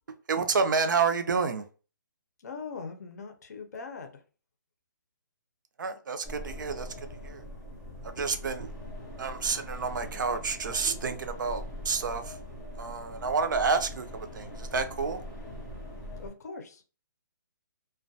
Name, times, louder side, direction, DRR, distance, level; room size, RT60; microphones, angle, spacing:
voice 1, 0.3-1.7 5.8-7.4 8.0-8.7 9.2-12.4 12.8-15.2, right 5 dB, 65° right, 0.5 m, -29 dB
voice 2, 2.4-4.2 16.2-16.8, left 4 dB, 50° left, 0.5 m, -41 dB
sound 1, 6.2-16.3, equal, 5° left, 0.4 m, -42 dB
2.3 x 2.1 x 2.6 m
hypercardioid pair, 170°, 11 cm